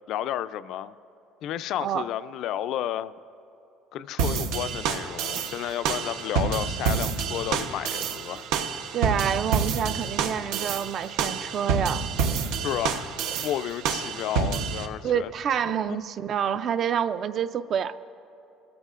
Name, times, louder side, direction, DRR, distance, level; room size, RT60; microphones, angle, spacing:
voice 1, 0.1-0.9 1.4-3.1 3.9-8.5 12.6-15.3 15.9-16.0, left 11 dB, 55° left, 14 dB, 0.3 m, -32 dB
sound 1, 4.2-14.9, right 6 dB, 80° right, 0.8 m, -28 dB
voice 2, 8.9-12.1 15.0-18.1, right 8 dB, 35° right, 14 dB, 0.3 m, -27 dB
24.5 x 13.5 x 2.5 m, 2.8 s
cardioid pair, 165°, 0 cm